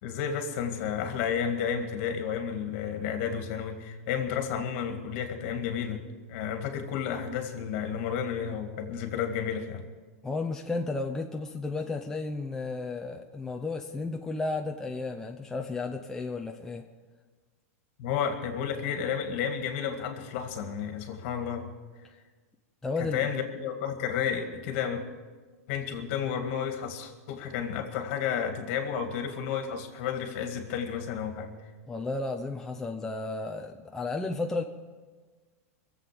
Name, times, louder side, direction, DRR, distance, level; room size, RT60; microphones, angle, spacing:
voice 1, 0.0-6.0 6.3-9.8 18.0-21.7 23.0-25.0 25.7-31.5, left 7 dB, 50° left, 5 dB, 2.1 m, -31 dB
voice 2, 10.2-16.8 22.8-23.2 31.9-34.6, left 3 dB, 5° left, 2 dB, 0.6 m, -33 dB
22.5 x 7.8 x 6.9 m, 1.4 s
supercardioid pair, 145°, 8 cm